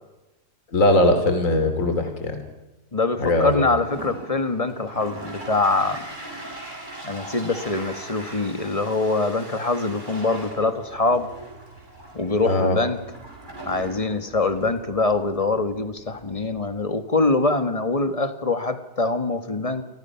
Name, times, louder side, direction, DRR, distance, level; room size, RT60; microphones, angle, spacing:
voice 1, 0.7-2.4 3.2-3.6 12.5-12.8, left 1 dB, 50° left, 7 dB, 3.1 m, -20 dB
voice 2, 2.9-6.0 7.0-11.3 12.1-13.0 13.6-19.8, left 3 dB, 20° left, 9 dB, 1.6 m, -24 dB
Toilet flush, 3.6-16.8, right 1 dB, 25° right, 7.4 m, -40 dB
30.0 x 24.0 x 5.8 m, 1.1 s
omnidirectional pair, 1.8 m